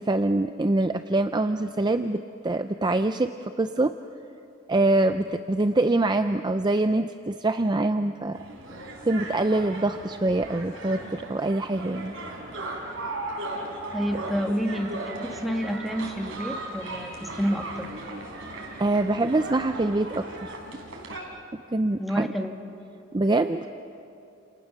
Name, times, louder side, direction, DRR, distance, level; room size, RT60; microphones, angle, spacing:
voice 1, 0.0-3.9 4.7-8.4 9.0-12.1 18.8-20.6 21.7-22.3 23.1-23.7, right 2 dB, 20° right, 9 dB, 0.5 m, -24 dB
sound 1, 8.3-21.2, right 2 dB, 75° right, 4.5 m, -37 dB
voice 2, 13.9-17.9 22.0-22.5, equal, ahead, 3 dB, 1.7 m, -29 dB
29.5 x 28.5 x 6.7 m, 2.7 s
head